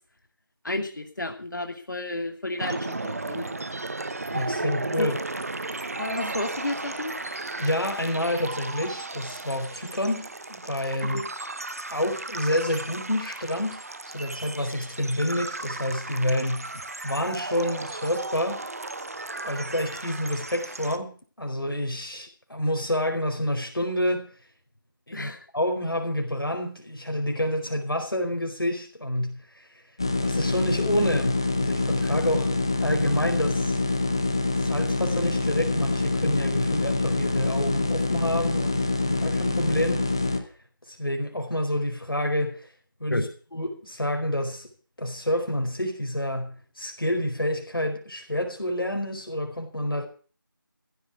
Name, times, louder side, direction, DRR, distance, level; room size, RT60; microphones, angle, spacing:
voice 1, 0.6-3.5 5.0-5.1 6.0-7.1 11.0-11.3 25.1-25.5 43.1-43.3, left 2 dB, 60° left, 5 dB, 2.5 m, -31 dB
sound 1, 2.6-21.0, right 2 dB, 45° right, 1.0 m, -35 dB
voice 2, 4.3-5.1 7.6-11.2 11.9-13.8 14.1-18.6 19.4-24.3 25.1-29.7 30.2-32.6 32.8-33.8 34.6-40.1 40.9-42.7 43.0-43.3 43.5-44.7 45.0-50.1, left 1 dB, 90° left, 4 dB, 4.6 m, -28 dB
sound 2, 30.0-40.4, left 3 dB, 10° left, 0.6 m, -25 dB
15.5 x 8.1 x 8.0 m, 0.40 s
figure-of-eight pair, 170°, 12 cm